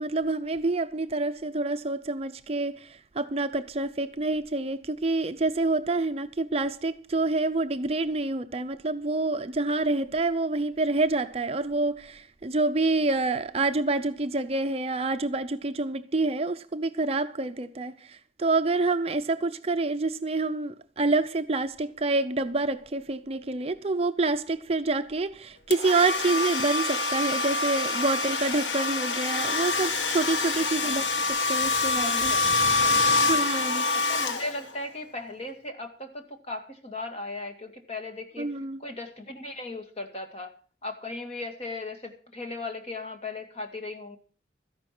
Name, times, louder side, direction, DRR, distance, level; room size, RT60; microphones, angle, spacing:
voice 1, 0.0-32.3 33.3-33.9 38.4-38.8, right 3 dB, 35° right, 0.6 m, -27 dB
Domestic sounds home sounds, 25.7-34.9, left 3 dB, 85° left, 1.4 m, -26 dB
voice 2, 30.8-31.6 32.0-32.5 32.8-33.5 33.9-38.5 38.8-40.5 40.8-44.2, left 2 dB, 35° left, 2.1 m, -38 dB
13.5 x 11.0 x 6.0 m
head